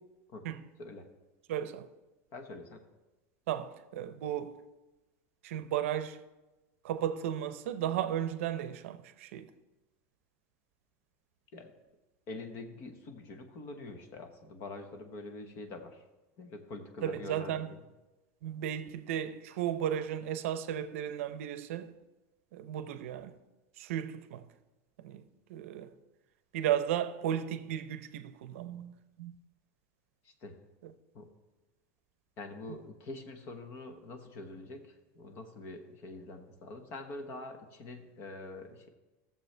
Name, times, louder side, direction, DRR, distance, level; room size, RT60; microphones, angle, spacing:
voice 1, 1.5-1.9 3.5-4.6 5.4-6.2 6.8-9.5 17.0-17.8 18.4-21.9 22.5-23.4 23.8-24.5 25.0-25.2 25.5-25.9 26.5-28.9 29.2-29.3 30.8-30.9, right 10 dB, 75° right, 0.6 m, -34 dB
voice 2, 2.3-2.8 11.5-11.7 12.3-16.0 16.4-17.7 30.2-30.6 31.1-31.3 32.4-38.9, left 2 dB, 35° left, 1.0 m, -45 dB
16.0 x 7.0 x 3.3 m
supercardioid pair, 175°, 7 cm